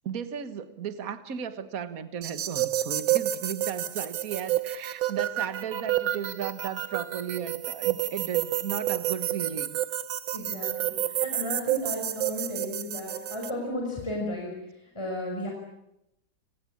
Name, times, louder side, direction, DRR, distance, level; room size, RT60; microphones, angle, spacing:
voice 1, 0.0-9.8, right 8 dB, 50° right, 11 dB, 1.8 m, -35 dB
sound 1, 2.2-13.5, right 12 dB, 85° right, 2.0 m, -30 dB
voice 2, 10.3-14.5 14.9-15.5, left 1 dB, 15° left, 0 dB, 5.7 m, -34 dB
30.0 x 19.0 x 8.6 m, 0.84 s
omnidirectional pair, 2.1 m